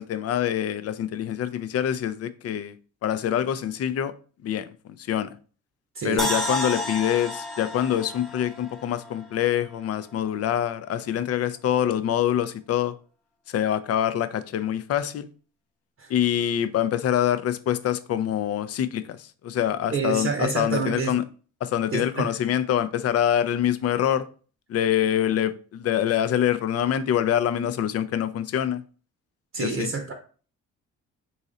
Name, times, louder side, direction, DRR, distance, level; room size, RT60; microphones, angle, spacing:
voice 1, 0.0-2.7 3.0-4.1 4.4-4.7 5.0-5.3 6.0-12.9 13.5-15.3 16.1-21.2 21.6-24.3 24.7-28.8 29.6-29.9, left 10 dB, 55° left, 0.5 m, -25 dB
voice 2, 5.9-6.3 16.0-16.1 19.9-21.1 21.9-22.3 29.5-30.1, right 5 dB, 45° right, 0.7 m, -28 dB
sound 1, 6.2-9.4 9.7-9.8, left 1 dB, ahead, 0.8 m, -31 dB
3.8 x 2.7 x 4.1 m
cardioid pair, 90°, 30 cm